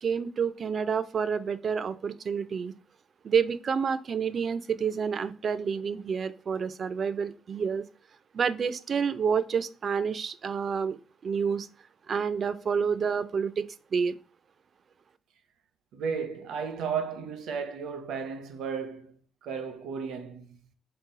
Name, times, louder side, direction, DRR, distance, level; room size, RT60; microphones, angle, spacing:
voice 1, 0.0-2.7 3.2-7.9 8.3-11.7 12.1-14.1, right 6 dB, 40° right, 0.3 m, -29 dB
voice 2, 15.9-20.7, right 6 dB, 80° right, 0.6 m, -34 dB
3.9 x 2.3 x 3.8 m
cardioid pair, 135°, 0 cm